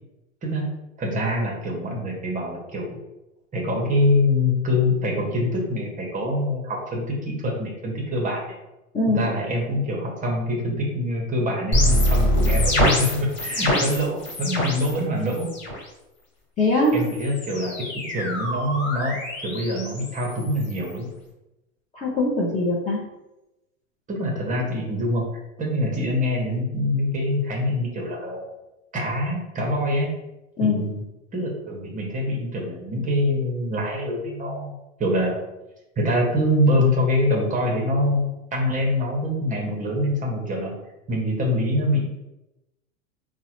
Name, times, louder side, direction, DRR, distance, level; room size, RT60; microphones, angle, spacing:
voice 1, 1.0-3.0 3.5-8.4 9.1-15.5 16.9-21.1 24.1-25.2 25.6-28.5 28.9-30.1 30.6-31.0 31.3-35.4 36.0-40.7 41.1-42.0, left 1 dB, 20° right, 0 dB, 0.7 m, -24 dB
voice 2, 8.9-9.3 16.6-17.0 21.9-23.0 30.6-30.8, left 2 dB, 20° left, -5 dB, 0.6 m, -21 dB
sound 1, 11.7-15.0 15.3-15.8 16.8-21.0, left 1 dB, 40° left, 1.4 m, -25 dB
3.6 x 2.1 x 2.9 m, 0.97 s
hypercardioid pair, 115°, 41 cm